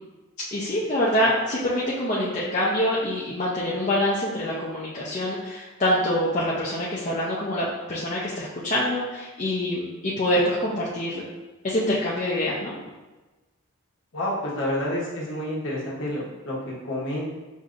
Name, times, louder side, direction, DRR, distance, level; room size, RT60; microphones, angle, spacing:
voice 1, 0.5-11.2 11.6-12.7, left 1 dB, 30° left, -7 dB, 0.5 m, -25 dB
voice 2, 14.1-17.3, left 1 dB, 55° left, -4 dB, 1.0 m, -29 dB
6.1 x 2.7 x 2.5 m, 1.2 s
head